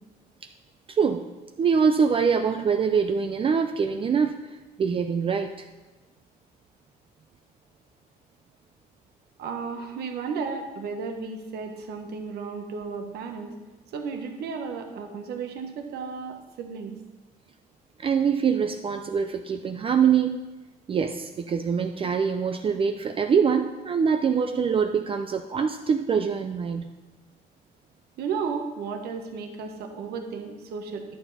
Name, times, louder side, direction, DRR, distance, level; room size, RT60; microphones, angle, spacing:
voice 1, 0.9-1.3 1.6-4.4 4.8-5.5 18.0-20.4 20.9-26.8, right 6 dB, 30° right, 6 dB, 0.5 m, -24 dB
voice 2, 9.4-13.5 13.9-16.9 28.2-31.0, right 5 dB, 70° right, 4 dB, 1.3 m, -34 dB
11.0 x 7.0 x 4.2 m, 1.2 s
cardioid pair, 110°, 17 cm